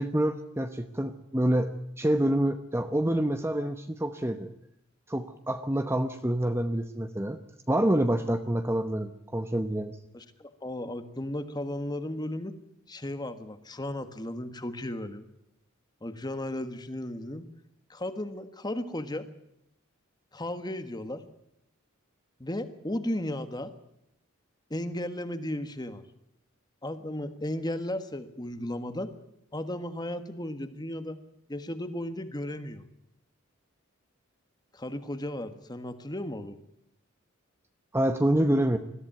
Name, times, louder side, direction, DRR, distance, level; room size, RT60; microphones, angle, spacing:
voice 1, 0.0-4.5 5.1-7.4 7.7-10.0 37.9-38.8, right 1 dB, 10° right, 8 dB, 0.9 m, -27 dB
voice 2, 10.1-12.5 12.9-15.2 16.0-17.5 17.9-19.3 20.3-21.2 22.4-23.7 24.7-26.0 26.8-29.1 29.5-31.2 31.5-32.8 34.7-36.6, left 1 dB, 20° left, 10 dB, 1.4 m, -35 dB
21.0 x 14.5 x 9.0 m, 0.80 s
head